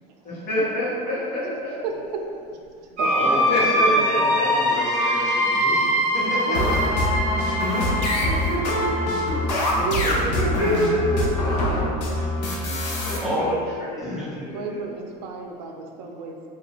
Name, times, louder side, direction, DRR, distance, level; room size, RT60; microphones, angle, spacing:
voice 1, 0.2-1.8 3.5-4.8 7.5-8.9 9.2-9.4 10.3-11.8 12.4-13.5 13.8-14.8, equal, 45° left, -7 dB, 1.0 m, -28 dB
voice 2, 1.8-2.2 2.5-2.6 2.9-3.7 3.9-4.4 6.5-8.2 8.6-8.9 9.8-10.6 14.5-16.5, right 5 dB, 80° right, 2 dB, 0.4 m, -33 dB
voice 3, 3.0-4.0 4.3-6.8 9.6-10.3 12.1-12.2 13.2-13.5 14.0-14.5, equal, ahead, -9 dB, 0.7 m, -30 dB
sound 1, 3.0-10.6, equal, 45° right, 0.8 m, -23 dB
sound 2, 5.8-8.4 8.7-8.8, left 1 dB, 20° right, 1.0 m, -34 dB
sound 3, 6.5-13.2, left 1 dB, 90° left, 0.6 m, -24 dB
2.3 x 2.3 x 2.9 m, 2.3 s
supercardioid pair, 115°, 21 cm